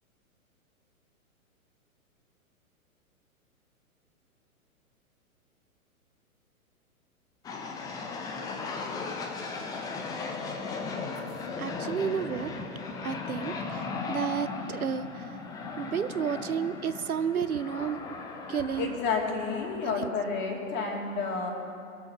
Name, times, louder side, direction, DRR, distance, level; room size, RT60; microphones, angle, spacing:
sound 1, 7.4-20.6, left 4 dB, 10° left, 0.6 m, -37 dB
voice 1, 11.6-12.5 13.0-15.4 15.8-18.0 18.5-19.0 20.0-20.1, right 7 dB, 75° right, 13 dB, 0.7 m, -31 dB
voice 2, 18.8-21.5, left 4 dB, 25° left, 0 dB, 2.5 m, -30 dB
22.5 x 7.5 x 6.1 m, 2.5 s
figure-of-eight pair, 110°, 43 cm